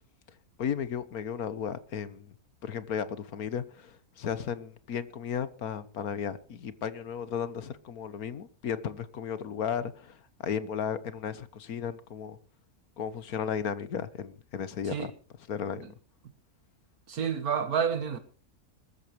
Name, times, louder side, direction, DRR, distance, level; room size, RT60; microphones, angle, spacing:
voice 1, 0.6-2.3 2.6-12.4 13.0-15.1 15.5-15.9, left 7 dB, 75° left, 1.6 m, -34 dB
voice 2, 17.1-18.2, right 7 dB, 80° right, 1.9 m, -29 dB
21.5 x 14.0 x 3.1 m
omnidirectional pair, 1.6 m